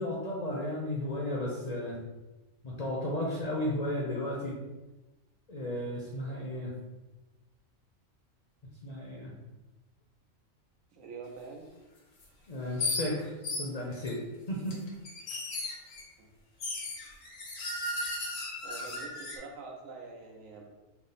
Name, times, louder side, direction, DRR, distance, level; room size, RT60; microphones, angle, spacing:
voice 1, 0.0-2.0 2.6-4.6 5.5-6.8 8.8-9.4 12.5-14.2 14.5-14.8, left 1 dB, 45° left, -4 dB, 0.5 m, -34 dB
voice 2, 10.9-11.7 16.2-16.3 18.6-20.7, right 4 dB, 85° right, 0 dB, 1.1 m, -45 dB
sound 1, 12.2-12.3 12.8-13.1 13.4-14.1 14.7-16.0 16.6-19.4, left 2 dB, 85° left, 1.2 m, -35 dB
3.5 x 2.0 x 4.0 m, 1.1 s
omnidirectional pair, 1.3 m